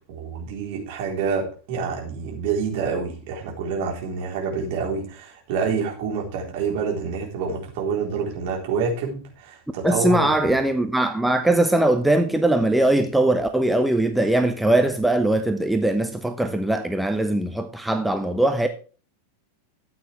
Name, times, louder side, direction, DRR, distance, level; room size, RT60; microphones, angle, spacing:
voice 1, 0.0-10.5, right 5 dB, 50° right, 4.0 m, -27 dB
voice 2, 9.8-18.7, right 1 dB, 5° right, 0.9 m, -21 dB
13.5 x 8.8 x 3.4 m
figure-of-eight pair, 90°, 0 cm